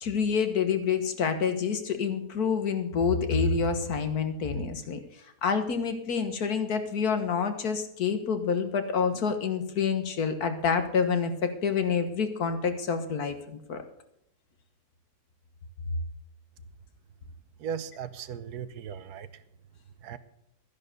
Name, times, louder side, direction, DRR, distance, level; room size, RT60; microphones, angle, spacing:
voice 1, 0.0-5.0 5.4-13.8, left 6 dB, 65° left, 8 dB, 1.8 m, -27 dB
voice 2, 17.6-19.4 20.0-20.2, right 8 dB, 75° right, 13 dB, 1.3 m, -37 dB
12.5 x 10.5 x 6.7 m, 0.76 s
omnidirectional pair, 1.7 m